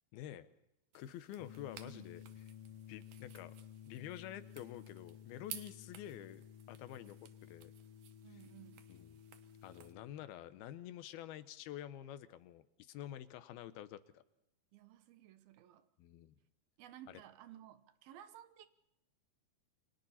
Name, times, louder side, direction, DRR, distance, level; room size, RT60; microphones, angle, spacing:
voice 1, 0.1-0.5 0.9-2.2 2.9-3.6 3.9-7.7 8.9-9.2 9.6-14.2 16.0-16.3 17.1-17.2, left 12 dB, 85° left, 13 dB, 2.9 m, -49 dB
sound 1, 0.9-9.9, right 10 dB, 65° right, 2.5 m, -56 dB
Dist Chr Arock, 1.4-10.1, left 10 dB, 65° left, 1.5 m, -55 dB
voice 2, 1.8-2.3 8.2-8.9 14.7-15.9 16.8-18.7, right 12 dB, 80° right, 11 dB, 2.9 m, -56 dB
29.5 x 24.5 x 4.3 m, 0.79 s
omnidirectional pair, 4.3 m